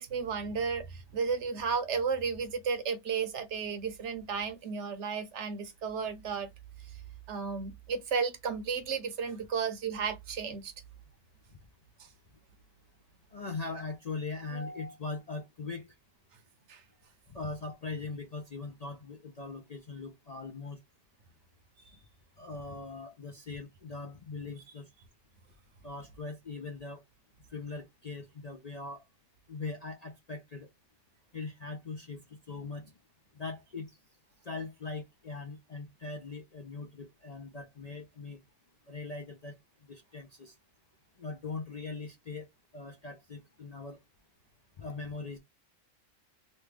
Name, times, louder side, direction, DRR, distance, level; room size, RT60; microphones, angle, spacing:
voice 1, 0.0-6.5 7.3-10.7 16.7-16.8, right 5 dB, 65° right, 1.0 m, -33 dB
voice 2, 13.3-15.9 17.3-20.8 22.4-24.9 25.8-27.0 27.5-29.0 29.5-30.7 31.3-32.8 33.3-33.9 34.4-38.4 38.9-39.6 39.9-40.5 41.2-42.5 42.7-44.0 44.8-45.4, left 3 dB, 50° left, 0.5 m, -40 dB
3.2 x 2.3 x 3.2 m
omnidirectional pair, 1.3 m